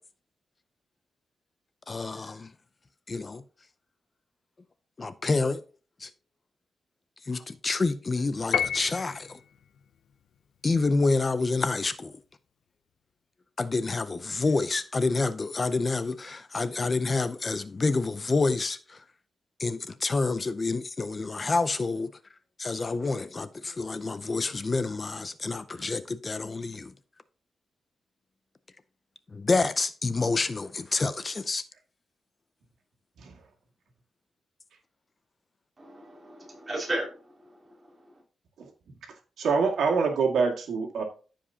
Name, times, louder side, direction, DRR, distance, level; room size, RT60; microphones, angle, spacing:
voice 1, 1.9-2.5 3.1-3.4 5.0-5.6 6.0-6.1 7.3-9.4 10.6-12.1 13.6-19.0 19.6-22.1 22.6-26.9 29.3-31.6, left 3 dB, 30° left, 0.5 m, -28 dB
Piano, 8.5-9.4, left 8 dB, 85° left, 0.5 m, -29 dB
voice 2, 35.8-38.2, right 1 dB, 20° right, 3.0 m, -36 dB
voice 3, 39.4-41.0, right 5 dB, 85° right, 2.0 m, -25 dB
14.5 x 5.1 x 2.8 m
wide cardioid pair, 135°, 0 cm